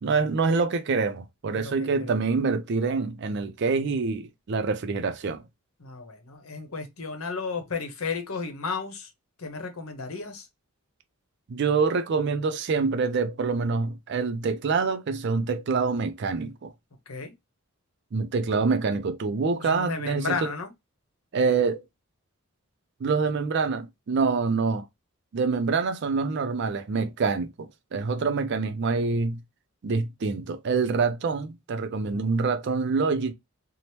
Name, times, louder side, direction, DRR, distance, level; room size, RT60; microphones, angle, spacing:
voice 1, 0.0-5.5 11.5-16.7 18.1-20.3 21.3-21.8 23.0-24.9 25.3-29.4 29.8-33.3, right 4 dB, 55° right, 0.4 m, -26 dB
voice 2, 1.4-2.3 5.8-9.1 9.4-10.5 17.1-17.3 19.6-20.7, left 4 dB, 80° left, 0.8 m, -33 dB
2.8 x 2.0 x 3.2 m
head